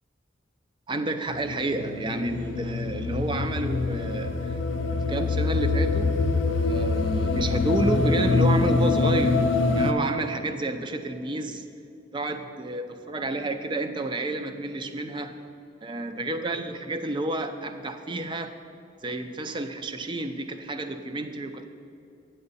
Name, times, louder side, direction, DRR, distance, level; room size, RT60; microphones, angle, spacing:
voice 1, 0.9-4.6 4.9-6.1 6.6-9.4 9.7-11.6 12.1-15.4 15.8-18.5 19.0-21.6, right 2 dB, 25° right, 8 dB, 0.4 m, -30 dB
sound 1, 1.3-9.9, left 3 dB, 80° left, 0.5 m, -25 dB
8.7 x 7.8 x 4.1 m, 2.6 s
head